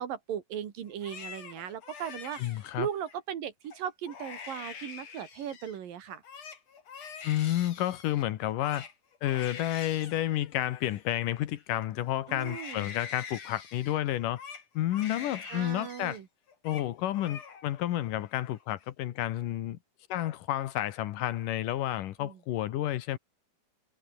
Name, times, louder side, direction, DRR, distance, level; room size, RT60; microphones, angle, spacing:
voice 1, 0.0-6.2 12.3-12.9 15.5-16.3 22.2-22.4, right 9 dB, 75° right, 3.8 m, -38 dB
Crying sobbing, 0.9-3.2 3.7-3.8 4.1-5.8 6.1-11.8 12.3-16.2 16.5-16.9 17.1-17.9 18.2-18.8, left 6 dB, 50° left, 4.0 m, -45 dB
voice 2, 2.4-2.9 7.2-8.9 9.2-14.4 14.7-16.2 16.6-19.8 20.1-23.2, left 13 dB, 75° left, 2.6 m, -30 dB
omnidirectional pair, 4.0 m